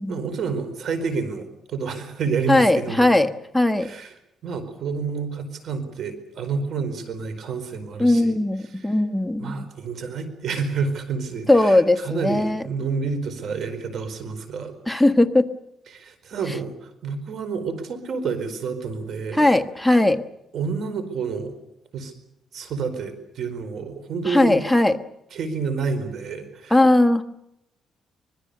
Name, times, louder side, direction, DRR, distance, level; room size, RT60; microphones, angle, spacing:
voice 1, 0.1-3.1 3.8-4.1 4.4-8.3 8.8-8.9 9.4-14.7 15.9-19.5 20.5-21.5 21.9-22.1 22.5-24.6 25.3-26.8, right 5 dB, 60° right, 10 dB, 4.6 m, -29 dB
voice 2, 2.5-3.9 8.0-9.6 11.5-12.6 14.9-15.5 19.3-20.2 24.2-25.0 26.7-27.2, left 1 dB, ahead, 6 dB, 1.4 m, -19 dB
25.5 x 21.5 x 6.8 m, 0.83 s
cardioid pair, 105°, 0 cm